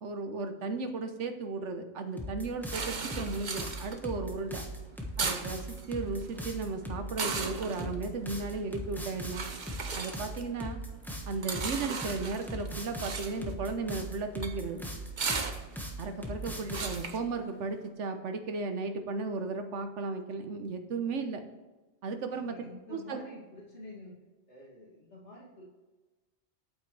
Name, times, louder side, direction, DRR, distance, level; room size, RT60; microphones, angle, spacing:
voice 1, 0.0-4.6 5.2-9.4 9.9-10.8 11.3-14.8 16.0-21.4 22.0-22.5 22.9-23.2, right 3 dB, 80° right, 7 dB, 1.3 m, -35 dB
sound 1, 2.2-17.1, equal, ahead, 1.2 m, -39 dB
sound 2, 2.7-17.9, right 4 dB, 45° right, 0.9 m, -38 dB
voice 2, 22.4-24.2 24.5-25.6, left 2 dB, 75° left, -6 dB, 2.9 m, -48 dB
8.7 x 8.4 x 3.3 m, 1.2 s
omnidirectional pair, 1.2 m